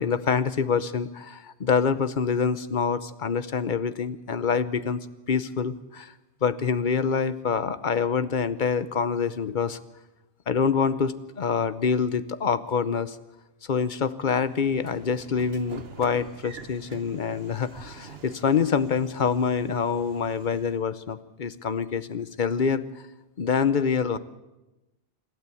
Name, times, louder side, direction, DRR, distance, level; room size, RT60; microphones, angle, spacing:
voice 1, 0.0-5.0 5.3-6.1 6.4-9.8 10.5-13.2 13.7-22.8 23.4-24.2, left 6 dB, 50° left, 14 dB, 1.0 m, -26 dB
Train / Sliding door, 14.3-20.9, right 5 dB, 65° right, 1.4 m, -46 dB
26.5 x 12.5 x 8.4 m, 1.0 s
omnidirectional pair, 1.1 m